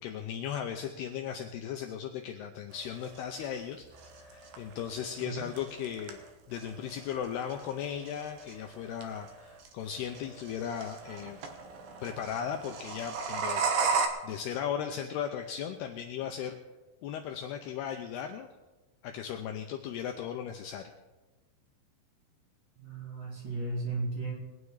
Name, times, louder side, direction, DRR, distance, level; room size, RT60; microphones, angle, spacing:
voice 1, 0.0-3.8 4.3-6.2 6.5-11.4 12.0-13.7 14.0-16.6 17.0-18.5 19.0-20.8, left 9 dB, 80° left, 4 dB, 2.4 m, -37 dB
sound 1, 2.7-14.1, right 5 dB, 70° right, 2.3 m, -36 dB
voice 2, 5.2-5.5 22.8-24.3, right 3 dB, 45° right, -3 dB, 2.8 m, -35 dB
21.5 x 9.3 x 4.9 m, 1.1 s
omnidirectional pair, 5.4 m